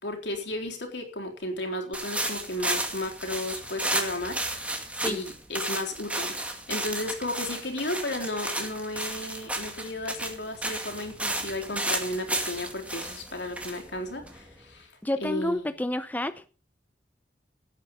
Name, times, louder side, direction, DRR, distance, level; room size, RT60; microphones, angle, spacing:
voice 1, 0.0-14.9 15.2-15.7, left 1 dB, 75° left, 3.8 m, -34 dB
sound 1, 1.9-14.7, right 1 dB, 10° right, 2.3 m, -33 dB
voice 2, 15.0-16.5, left 1 dB, 10° left, 0.6 m, -29 dB
16.5 x 8.9 x 5.5 m
head